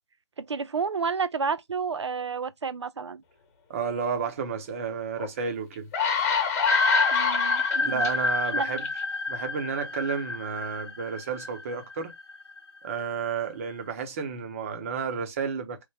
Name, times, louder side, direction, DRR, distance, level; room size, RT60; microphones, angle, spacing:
voice 1, 0.4-3.2 7.1-8.1 8.5-8.7, right 5 dB, 75° right, 0.5 m, -30 dB
voice 2, 3.7-5.9 7.8-8.9 9.3-12.1 12.8-15.8, right 6 dB, 30° right, 0.8 m, -31 dB
sound 1, 5.2-5.3 5.7-8.1 8.8-9.0, left 6 dB, 30° left, 1.1 m, -26 dB
sound 2, 6.7-12.9, left 3 dB, 55° left, 0.7 m, -28 dB
3.2 x 2.1 x 3.4 m
figure-of-eight pair, 150°, 15 cm